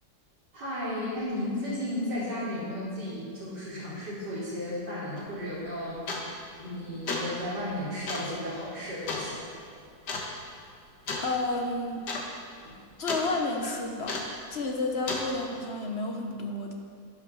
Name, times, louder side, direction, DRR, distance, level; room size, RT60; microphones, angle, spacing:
voice 1, 0.5-9.5 12.6-12.8, left 1 dB, 90° right, -11 dB, 3.9 m, -34 dB
sound 1, 5.2-5.3 6.1-6.4 6.9-7.4 8.1-8.3 9.1-9.3 10.1-10.3 11.1-11.3 11.6-11.7 12.0-12.3 12.5-13.3 14.1-14.4 15.1-15.3, left 3 dB, 80° left, 2.2 m, -33 dB
voice 2, 11.2-12.0 13.0-14.1 14.5-16.7, left 2 dB, 40° left, 2 dB, 1.3 m, -31 dB
10.5 x 10.5 x 6.4 m, 2.4 s
omnidirectional pair, 1.8 m